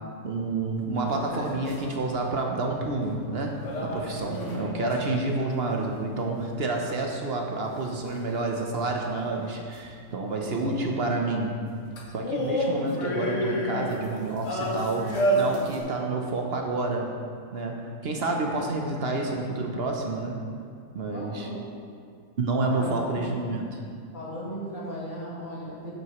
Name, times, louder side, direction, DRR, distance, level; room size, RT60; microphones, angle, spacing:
voice 1, 0.2-3.5 3.8-11.5 12.1-17.1 17.5-20.4 20.9-21.5 22.4-23.8, right 2 dB, 55° right, 1 dB, 0.9 m, -29 dB
sound 1, 0.9-2.2 3.6-5.2 9.7-9.8 12.0-15.8, equal, 65° left, 1.4 m, -29 dB
voice 2, 4.3-4.8 10.3-10.8 18.6-19.0 21.1-21.6 22.7-23.3 24.1-25.9, equal, 80° left, -6 dB, 2.4 m, -37 dB
9.4 x 7.6 x 3.0 m, 2.3 s
omnidirectional pair, 1.4 m